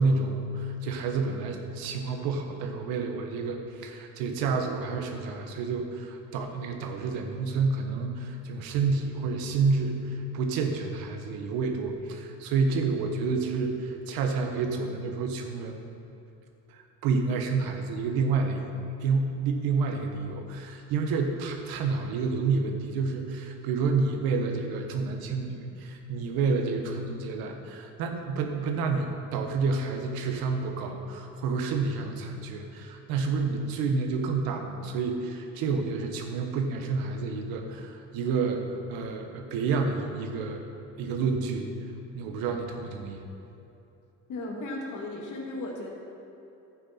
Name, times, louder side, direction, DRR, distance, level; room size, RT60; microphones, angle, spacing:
voice 1, 0.0-15.8 16.7-18.7 19.0-40.6 41.0-41.7 42.1-43.2, right 4 dB, 90° right, 4 dB, 1.3 m, -29 dB
voice 2, 44.3-45.9, left 2 dB, 60° left, -1 dB, 2.3 m, -35 dB
12.0 x 8.9 x 4.3 m, 3.0 s
cardioid pair, 105°, 35 cm